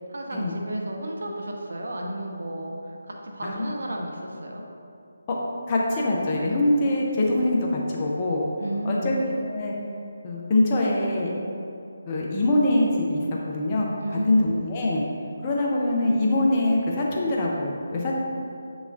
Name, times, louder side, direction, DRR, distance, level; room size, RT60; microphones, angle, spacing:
voice 1, 0.1-2.9 3.3-4.6 8.6-9.1 14.0-14.5, right 1 dB, 55° right, 0 dB, 0.5 m, -32 dB
voice 2, 5.7-8.5 8.8-9.7 10.2-11.3 12.1-13.9 14.3-15.0 15.4-18.2, left 1 dB, 25° left, -3 dB, 0.5 m, -24 dB
6.7 x 3.0 x 2.4 m, 2.5 s
figure-of-eight pair, 150°, 0 cm